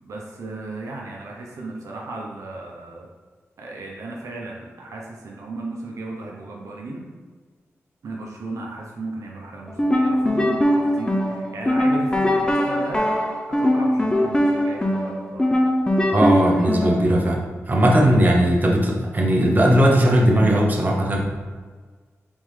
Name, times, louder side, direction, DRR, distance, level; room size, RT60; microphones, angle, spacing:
voice 1, 0.0-3.1 3.6-7.1 8.0-13.1 13.6-15.6, right 2 dB, 85° right, -1 dB, 0.7 m, -35 dB
sound 1, 9.7-17.1, left 1 dB, 15° left, 0.5 m, -21 dB
voice 2, 16.1-21.3, equal, 35° right, -1 dB, 0.8 m, -18 dB
4.0 x 3.7 x 3.2 m, 1.5 s
cardioid pair, 80°, 5 cm